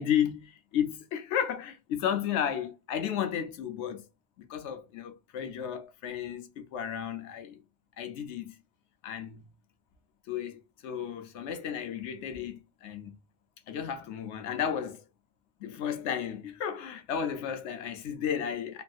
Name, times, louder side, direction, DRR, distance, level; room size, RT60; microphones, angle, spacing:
voice 1, 0.0-4.1 4.4-7.6 8.0-8.5 9.0-9.4 10.3-13.1 13.7-15.0 15.6-18.8, left 8 dB, 90° left, 0.9 m, -33 dB
3.2 x 2.6 x 2.3 m
omnidirectional pair, 1.1 m